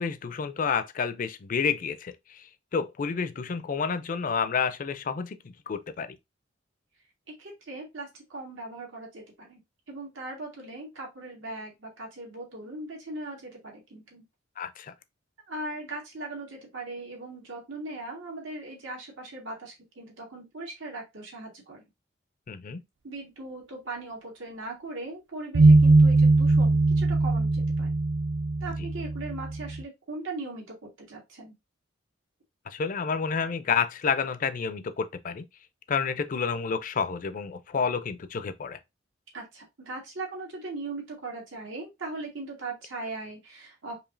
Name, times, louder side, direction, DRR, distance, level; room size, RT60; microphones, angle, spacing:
voice 1, 0.0-6.2 14.6-14.9 22.5-22.8 32.7-35.4 35.9-38.8, left 6 dB, 45° left, 0.4 m, -30 dB
voice 2, 7.4-9.6 9.9-14.2 15.5-21.8 23.0-28.0 28.6-31.6 39.3-44.0, right 2 dB, 85° right, 1.8 m, -39 dB
sound 1, 25.5-29.8, right 3 dB, 65° right, 0.4 m, -20 dB
4.9 x 2.8 x 2.5 m
head